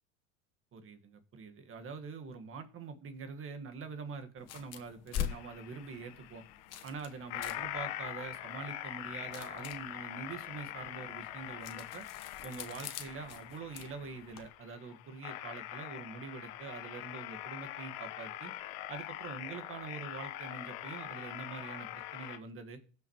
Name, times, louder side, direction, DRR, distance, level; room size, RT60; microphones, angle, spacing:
voice 1, 0.7-6.4 6.8-12.0 12.4-18.5 18.9-22.8, right 5 dB, 35° right, 7 dB, 1.6 m, -45 dB
sound 1, 4.4-14.5, left 10 dB, 45° left, 1.2 m, -45 dB
sound 2, 5.2-22.4, left 14 dB, 70° left, 1.1 m, -43 dB
16.5 x 5.9 x 3.0 m, 0.41 s
supercardioid pair, 105°, 37 cm